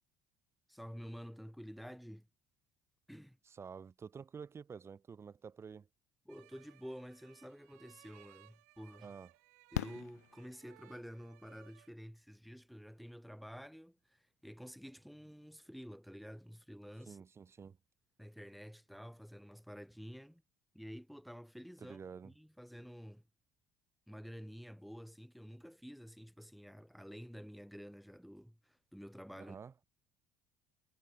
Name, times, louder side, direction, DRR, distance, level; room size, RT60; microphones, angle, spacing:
voice 1, 0.7-2.3 3.1-3.4 6.3-9.1 9.7-17.2 18.2-20.4 20.7-23.2 24.1-29.6, equal, ahead, 3.8 m, -50 dB
voice 2, 3.5-5.9 9.0-9.3 17.1-17.8 21.8-22.3 29.4-29.7, right 6 dB, 30° right, 2.2 m, -49 dB
sound 1, 6.3-11.9, right 26 dB, 65° right, 3.8 m, -64 dB
Fireworks, 8.1-8.2 9.7-11.1 12.8-12.9 13.1-13.2, left 12 dB, 75° left, 0.6 m, -41 dB
figure-of-eight pair, 60°, 9 cm